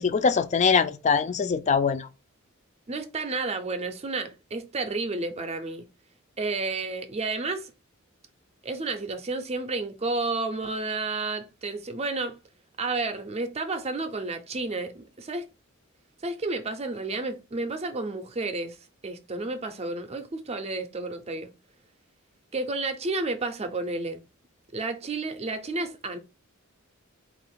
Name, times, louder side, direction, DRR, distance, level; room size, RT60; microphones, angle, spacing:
voice 1, 0.0-2.1, left 5 dB, 35° left, 0.4 m, -23 dB
voice 2, 2.9-5.9 6.4-7.7 8.6-12.4 12.8-15.5 16.2-18.8 19.0-21.5 22.5-24.2 24.7-26.2, right 3 dB, 30° right, 0.6 m, -31 dB
4.2 x 2.5 x 3.6 m
head